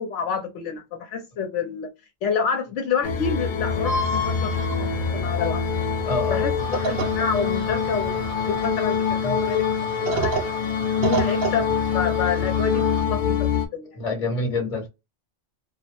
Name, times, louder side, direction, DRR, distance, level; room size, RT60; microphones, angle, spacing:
voice 1, 0.0-1.9 2.2-5.6 6.3-8.2 8.5-9.8 10.1-10.5 11.0-11.7 11.9-14.0, left 6 dB, 80° left, 0.9 m, -28 dB
sound 1, 3.0-13.7, left 7 dB, 60° left, 0.5 m, -25 dB
sound 2, 3.7-8.7, left 2 dB, 20° right, 0.9 m, -33 dB
voice 2, 6.1-6.5 9.2-9.4 13.9-14.9, left 3 dB, 35° left, 0.9 m, -26 dB
sound 3, 6.6-13.0, right 5 dB, 60° right, 0.7 m, -31 dB
2.2 x 2.0 x 2.8 m
omnidirectional pair, 1.2 m